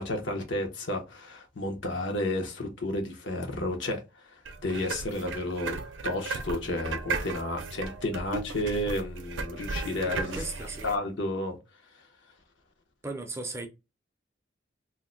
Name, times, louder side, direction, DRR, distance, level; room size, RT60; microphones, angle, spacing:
voice 1, 0.0-4.0 4.6-5.8 6.0-10.4 10.8-11.6, left 1 dB, 75° left, 1.0 m, -31 dB
sound 1, 4.4-11.0, right 4 dB, 75° right, 0.5 m, -36 dB
voice 2, 10.3-10.9 13.0-13.7, right 2 dB, 15° right, 0.5 m, -36 dB
2.8 x 2.2 x 3.7 m
head